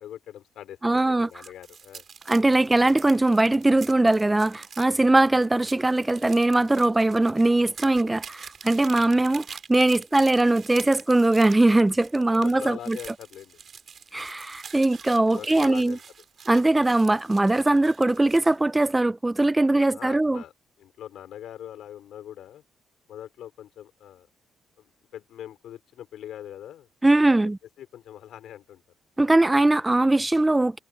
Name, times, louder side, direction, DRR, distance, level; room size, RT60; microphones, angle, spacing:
voice 1, 0.0-2.0 4.9-5.2 8.9-9.1 12.2-13.6 15.3-16.0 19.7-20.5 20.8-22.6 23.1-24.3 24.8-24.9 25.1-26.9 27.3-27.5 27.8-28.8, left 11 dB, 75° left, 4.7 m, -42 dB
voice 2, 0.8-1.4 2.3-13.0 14.1-16.0 16.5-20.4 27.0-27.6 29.2-30.8, right 2 dB, 15° right, 0.3 m, -21 dB
sound 1, 1.2-18.6, right 7 dB, 50° right, 4.7 m, -45 dB
cardioid pair, 110°, 0 cm